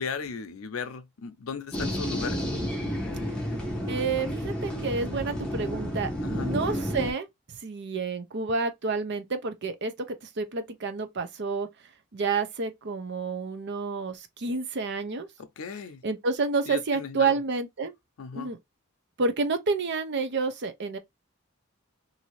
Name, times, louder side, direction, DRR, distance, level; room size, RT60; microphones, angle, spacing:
voice 1, 0.0-2.4 6.2-6.5 15.4-16.0 16.7-17.3 18.2-18.5, left 5 dB, 80° left, 0.5 m, -36 dB
sound 1, 1.7-7.1, equal, 5° left, 0.8 m, -31 dB
voice 2, 3.9-7.3 7.6-11.7 12.1-15.3 16.0-17.9 18.3-18.6 19.2-21.0, right 4 dB, 55° right, 0.6 m, -29 dB
2.7 x 2.6 x 3.0 m
head